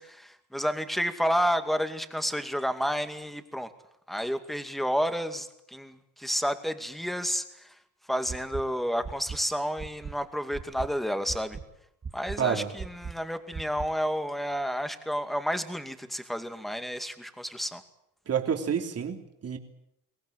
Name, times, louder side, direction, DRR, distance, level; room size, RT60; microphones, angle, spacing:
voice 1, 0.0-3.7 4.1-7.8 8.1-11.6 12.1-17.8, equal, ahead, 8 dB, 2.3 m, -30 dB
sound 1, 8.3-8.6 9.0-9.4 9.8-10.1 10.5-10.9 11.3-11.6 12.0-12.4 12.8-13.1 13.5-13.9, right 5 dB, 35° right, 2.1 m, -37 dB
voice 2, 12.4-12.7 18.3-19.6, right 7 dB, 55° right, 4 dB, 3.3 m, -29 dB
23.5 x 18.0 x 9.3 m, 0.79 s
cardioid pair, 90°, 30 cm